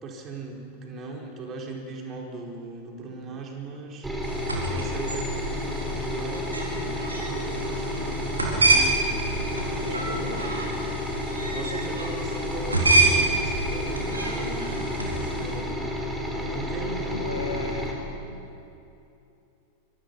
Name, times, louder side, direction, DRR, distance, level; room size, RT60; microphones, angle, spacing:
voice 1, 0.0-4.1 4.5-10.7 11.5-15.7 16.3-17.8, right 3 dB, 30° right, 0 dB, 4.6 m, -38 dB
sound 1, 4.0-17.9, left 1 dB, 5° right, 4.2 m, -31 dB
sound 2, 4.2-15.6, right 2 dB, 80° right, 4.2 m, -27 dB
voice 2, 9.6-10.5 16.9-18.4, left 2 dB, 80° left, 5 dB, 2.2 m, -37 dB
25.5 x 25.0 x 5.6 m, 2.8 s
figure-of-eight pair, 90°, 0 cm